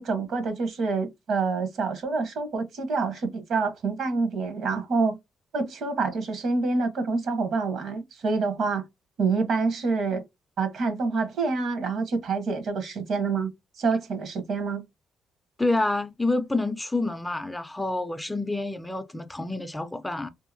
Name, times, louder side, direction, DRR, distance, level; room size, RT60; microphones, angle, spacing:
voice 1, 0.0-5.2 5.5-8.8 9.2-10.2 10.6-13.5 13.8-14.8, right 4 dB, 70° right, 0.9 m, -27 dB
voice 2, 15.6-20.3, left 2 dB, 10° left, 0.4 m, -28 dB
2.8 x 2.7 x 2.6 m
cardioid pair, 90°, 0 cm